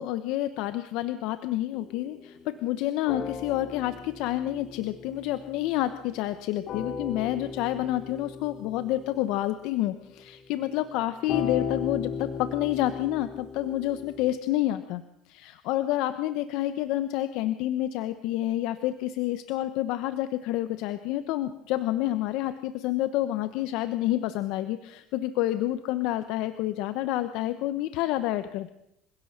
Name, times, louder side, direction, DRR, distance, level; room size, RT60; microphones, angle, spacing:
voice 1, 0.0-15.0 15.3-28.7, left 14 dB, 75° left, 11 dB, 1.0 m, -29 dB
sound 1, 1.7-6.3 6.7-9.5 11.3-14.3, left 6 dB, 50° left, 3.0 m, -37 dB
26.5 x 16.5 x 6.6 m, 0.81 s
supercardioid pair, 100°, 0 cm